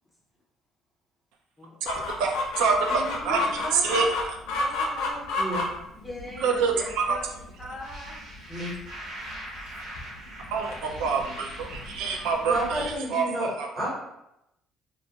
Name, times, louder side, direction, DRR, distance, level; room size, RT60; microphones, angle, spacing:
voice 1, 1.8-3.5 3.7-4.1 6.4-7.2 10.5-13.9, right 5 dB, 85° right, 2 dB, 0.3 m, -27 dB
Chicken rooster, 1.9-13.0, left 2 dB, 85° left, 0.4 m, -33 dB
voice 2, 2.9-4.2 4.5-5.3 5.9-7.3 7.6-8.2 10.6-11.2 11.9-12.0, equal, 5° left, -3 dB, 0.4 m, -40 dB
sound 1, 7.8-12.7, right 1 dB, 70° right, 1.0 m, -42 dB
voice 3, 12.5-13.5 13.8-14.0, equal, 20° right, -6 dB, 0.9 m, -30 dB
2.4 x 2.2 x 2.8 m, 0.84 s
cardioid pair, 165°, 0 cm